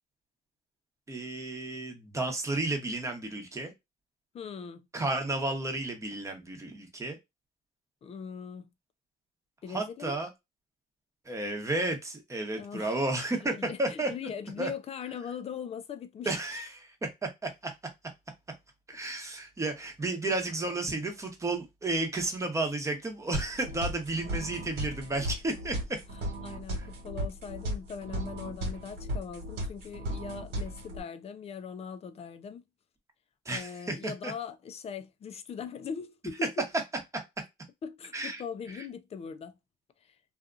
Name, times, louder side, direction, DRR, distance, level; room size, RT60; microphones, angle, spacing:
voice 1, 1.1-3.7 4.9-7.2 9.7-10.3 11.2-14.1 14.6-14.7 16.2-17.7 18.9-26.0 26.8-26.9 33.4-34.3 38.1-38.4, right 2 dB, 15° right, 0.9 m, -32 dB
voice 2, 4.3-4.9 8.0-8.7 9.6-10.2 12.5-12.9 13.4-16.4 26.4-32.6 33.5-36.5 37.8-39.6 40.0-40.2, left 7 dB, 35° left, 0.5 m, -40 dB
sound 1, 23.3-31.0, equal, 75° right, 1.3 m, -36 dB
2.8 x 2.4 x 2.4 m
cardioid pair, 110°, 17 cm